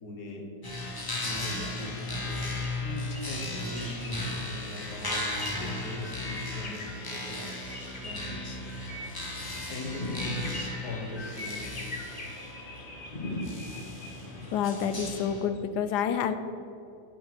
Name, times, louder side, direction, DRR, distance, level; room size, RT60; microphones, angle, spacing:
voice 1, 0.0-0.5 1.4-2.4 2.8-5.2 5.6-8.7 9.7-11.7, left 2 dB, 75° left, 2 dB, 1.9 m, -40 dB
sound 1, 0.6-15.4, left 2 dB, 15° left, 1.0 m, -36 dB
sound 2, 1.3-15.3, left 2 dB, 35° left, 1.8 m, -41 dB
voice 2, 14.5-16.4, left 8 dB, 90° left, 10 dB, 1.3 m, -28 dB
10.0 x 6.7 x 6.1 m, 2.7 s
omnidirectional pair, 1.7 m